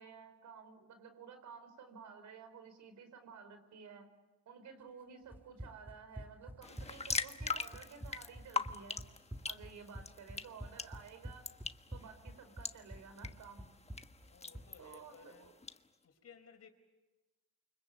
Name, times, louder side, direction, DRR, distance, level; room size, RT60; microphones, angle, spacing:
voice 1, 0.0-4.1 4.5-9.1 9.5-11.5 11.9-13.7 14.8-15.5, right 6 dB, 75° right, 5.1 m, -53 dB
Run, 5.3-14.7, equal, 5° right, 1.4 m, -48 dB
sound 1, 6.6-15.8, left 4 dB, 20° left, 1.3 m, -43 dB
voice 2, 14.3-15.5 16.0-16.7, left 6 dB, 55° left, 4.4 m, -58 dB
28.5 x 25.0 x 7.9 m
cardioid pair, 90°, 30 cm